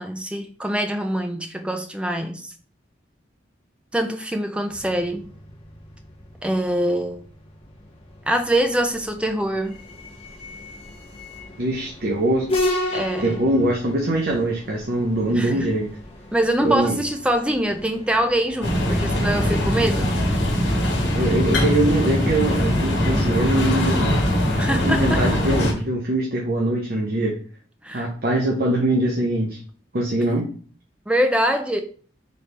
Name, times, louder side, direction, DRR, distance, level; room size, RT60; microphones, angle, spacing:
voice 1, 0.0-2.5 3.9-5.3 6.4-7.2 8.3-9.8 12.9-13.4 15.3-15.7 16.3-20.1 24.5-25.2 27.8-28.1 31.1-31.8, right 1 dB, 5° right, 6 dB, 0.4 m, -24 dB
sound 1, 4.7-21.9, left 1 dB, 30° left, 0.8 m, -35 dB
voice 2, 11.6-12.5 12.8-12.9 13.2-15.9 16.6-17.0 21.1-24.2 24.8-27.4 27.9-29.6 29.9-30.5, right 1 dB, 50° right, -1 dB, 0.7 m, -22 dB
sound 2, 18.6-25.7, left 1 dB, 65° left, 1.2 m, -21 dB
4.1 x 3.2 x 3.3 m, 0.43 s
head